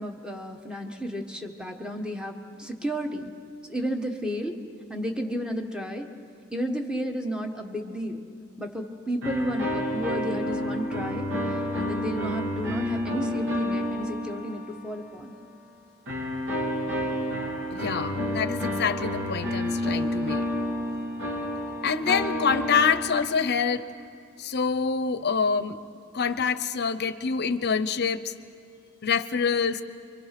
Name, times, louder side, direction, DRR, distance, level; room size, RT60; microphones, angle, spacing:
voice 1, 0.0-3.3 3.7-4.6 4.9-6.1 6.5-8.2 8.6-15.3, equal, 5° right, 4 dB, 1.4 m, -32 dB
sound 1, 9.2-15.0 16.1-23.5, left 1 dB, 60° right, 3.2 m, -30 dB
voice 2, 17.7-20.4 21.8-23.8 24.4-25.8 26.1-28.3 29.0-29.8, left 5 dB, 50° left, 12 dB, 0.8 m, -26 dB
28.5 x 24.5 x 6.0 m, 2.3 s
head